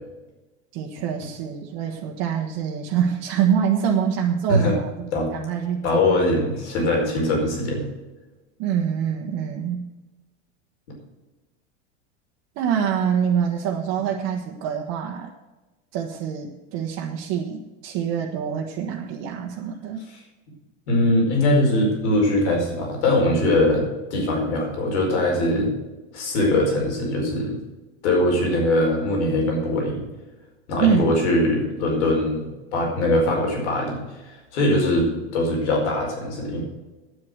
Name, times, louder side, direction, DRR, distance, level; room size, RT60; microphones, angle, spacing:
voice 1, 0.7-6.2 8.6-9.9 12.6-15.3 15.9-20.1 30.8-31.2, right 8 dB, 50° right, 0 dB, 1.4 m, -25 dB
voice 2, 5.8-7.8 20.1-20.2 20.9-23.8 24.1-25.7 26.1-27.6 28.0-30.1 30.7-32.4 32.7-35.1 35.3-36.6, left 1 dB, 80° left, 0 dB, 4.9 m, -21 dB
9.7 x 7.8 x 7.9 m, 1.1 s
supercardioid pair, 135°, 33 cm